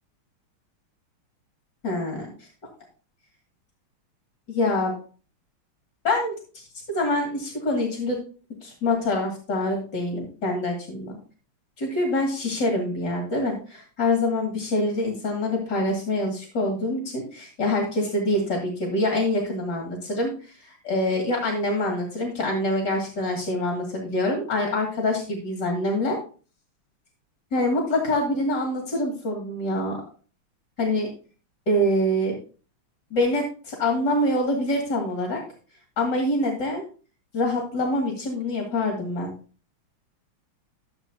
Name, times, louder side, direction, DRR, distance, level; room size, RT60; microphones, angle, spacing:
voice 1, 1.8-2.5 4.5-4.9 6.0-8.2 8.6-11.1 11.8-26.2 27.5-30.0 30.8-31.1 31.7-32.3 33.1-35.4 36.0-36.8 37.3-39.3, left 1 dB, 50° left, 0 dB, 3.0 m, -25 dB
13.5 x 7.3 x 2.8 m, 0.37 s
omnidirectional pair, 2.3 m